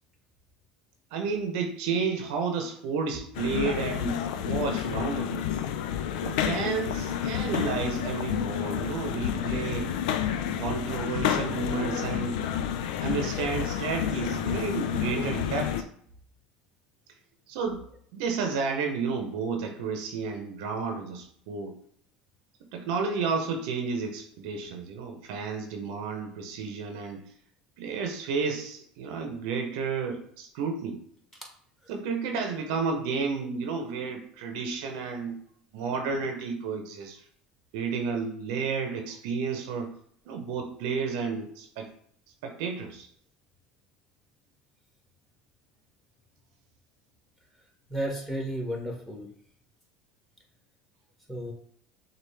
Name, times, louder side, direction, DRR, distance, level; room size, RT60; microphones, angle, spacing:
voice 1, 1.1-5.5 6.2-9.9 10.6-12.4 13.0-15.8 17.5-17.8 18.1-21.8 22.7-27.2 27.8-31.0 31.9-35.4 35.7-37.2 37.7-39.9 40.3-41.9 42.4-43.1, right 5 dB, 70° right, 4 dB, 0.8 m, -31 dB
sound 1, 3.3-15.8, left 9 dB, 70° left, 0.4 m, -30 dB
voice 2, 47.9-49.3 51.3-51.5, equal, 5° left, -1 dB, 1.9 m, -33 dB
6.3 x 2.5 x 3.4 m, 0.64 s
hypercardioid pair, 80°, 4 cm